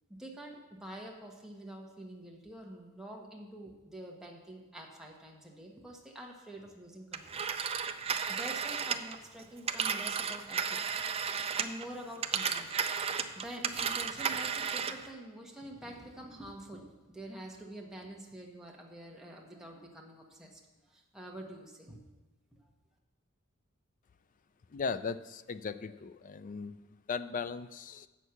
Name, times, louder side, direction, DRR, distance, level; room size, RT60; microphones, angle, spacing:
voice 1, 0.1-7.4 8.3-10.9 11.6-20.6 20.9-22.0, right 1 dB, 5° right, -2 dB, 1.3 m, -47 dB
Telephone, 7.1-11.9 12.2-15.1, right 6 dB, 25° right, 0.4 m, -33 dB
voice 2, 24.7-28.1, left 5 dB, 40° left, 12 dB, 0.4 m, -38 dB
8.2 x 6.4 x 7.0 m, 1.1 s
head